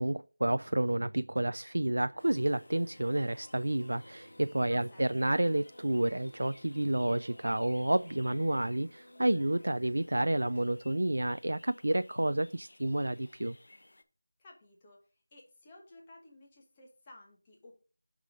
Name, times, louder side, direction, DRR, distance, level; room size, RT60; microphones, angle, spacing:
voice 1, 0.0-13.6, right 1 dB, 70° right, 0.3 m, -30 dB
sound 1, 2.0-9.7, left 1 dB, 90° left, 1.3 m, -58 dB
sound 2, 2.2-14.0, left 1 dB, 45° left, 0.9 m, -59 dB
voice 2, 4.7-5.4 14.4-17.8, left 1 dB, 10° left, 1.2 m, -56 dB
6.5 x 6.1 x 3.7 m
figure-of-eight pair, 180°, 0 cm